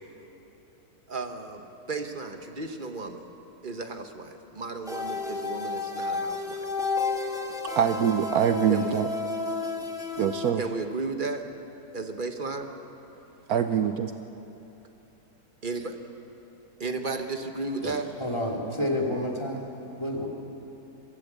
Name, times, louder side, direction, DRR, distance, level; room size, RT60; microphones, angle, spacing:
voice 1, 1.1-3.3 3.6-6.7 8.7-9.0 10.6-11.4 11.9-12.7 15.6-16.0 16.8-18.1, right 3 dB, 30° right, 5 dB, 1.3 m, -34 dB
sound 1, 4.8-10.5, left 4 dB, ahead, 1.5 m, -31 dB
voice 2, 7.7-9.1 10.2-10.6 13.5-14.1, right 8 dB, 65° right, 8 dB, 1.1 m, -24 dB
voice 3, 18.2-19.6 20.0-20.3, left 1 dB, 15° left, -1 dB, 2.5 m, -29 dB
22.5 x 15.0 x 8.2 m, 3.0 s
omnidirectional pair, 1.8 m